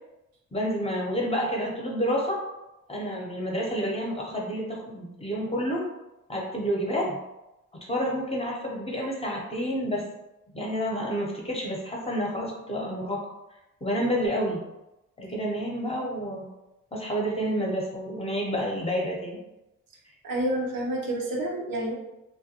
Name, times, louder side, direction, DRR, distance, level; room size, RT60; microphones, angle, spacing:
voice 1, 0.5-2.4 2.9-5.8 6.3-7.2 7.7-10.0 10.5-13.2 13.8-14.6 15.2-16.5 16.9-19.4, equal, 20° left, -3 dB, 0.7 m, -29 dB
voice 2, 20.2-21.9, right 1 dB, 85° right, -1 dB, 0.7 m, -28 dB
2.2 x 2.2 x 2.8 m, 0.96 s
cardioid pair, 70°, 33 cm